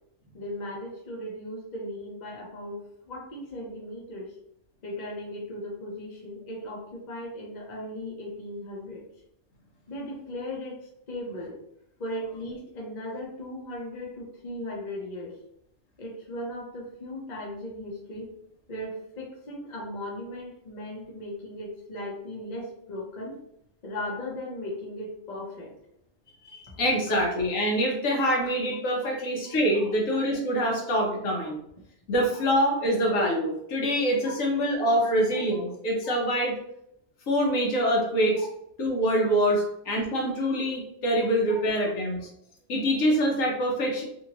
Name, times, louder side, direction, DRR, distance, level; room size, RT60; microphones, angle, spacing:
voice 1, 0.3-4.3 4.8-9.0 9.9-11.6 12.0-15.4 16.0-18.3 18.7-23.4 23.8-25.7 26.7-26.8 29.5-29.6 35.0-35.1 35.5-35.6 38.4-38.5 39.5-39.6, left 1 dB, 40° left, -2 dB, 0.8 m, -37 dB
voice 2, 26.4-31.6 32.1-36.5 37.3-38.5 38.8-42.3 42.7-44.0, equal, 80° left, -1 dB, 1.2 m, -25 dB
2.8 x 2.7 x 2.9 m, 0.74 s
omnidirectional pair, 1.3 m